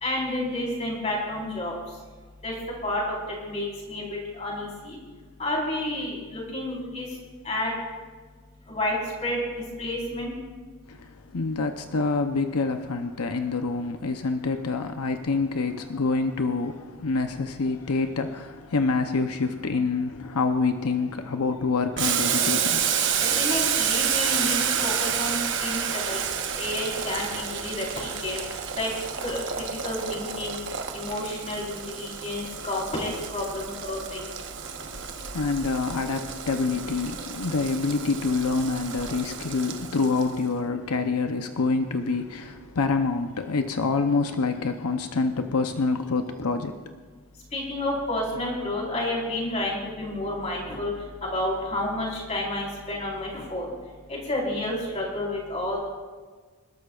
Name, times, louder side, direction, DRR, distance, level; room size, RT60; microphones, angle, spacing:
voice 1, 0.0-1.7 2.4-2.5 2.8-3.2 3.5-4.0 4.4-5.0 5.4-7.1 7.5-7.7 8.7-9.0 9.2-9.4 9.8-10.3 23.4-24.6 24.8-25.8 26.1-26.2 26.6-28.4 28.7-28.9 29.2-29.4 29.8-30.6 30.9-34.2 47.5-50.9 51.3-53.7 54.1-55.8, left 1 dB, 30° left, -3 dB, 4.2 m, -30 dB
voice 2, 10.9-22.9 35.3-46.8, left 4 dB, 90° left, 6 dB, 0.8 m, -26 dB
Boiling, 22.0-40.4, right 8 dB, 55° right, 1.1 m, -30 dB
27.0 x 12.5 x 2.4 m, 1.5 s
head